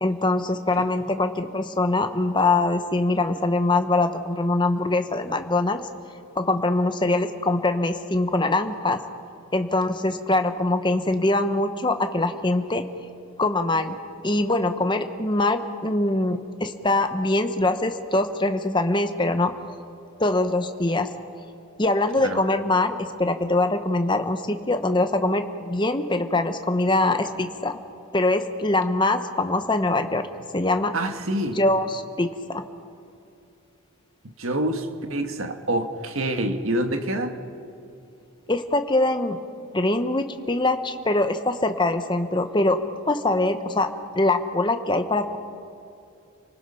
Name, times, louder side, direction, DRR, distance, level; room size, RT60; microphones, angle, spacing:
voice 1, 0.0-5.9 6.4-9.0 9.5-12.8 13.4-14.0 14.2-19.5 20.2-21.1 21.8-27.8 28.1-30.2 30.5-30.9 31.5-32.6 38.5-39.4 39.7-42.8 43.1-43.9 44.2-45.4, left 2 dB, 20° left, 8 dB, 1.0 m, -23 dB
voice 2, 30.9-31.6 34.4-37.4, right 1 dB, 70° right, 6 dB, 1.7 m, -26 dB
30.0 x 19.0 x 5.7 m, 2.5 s
head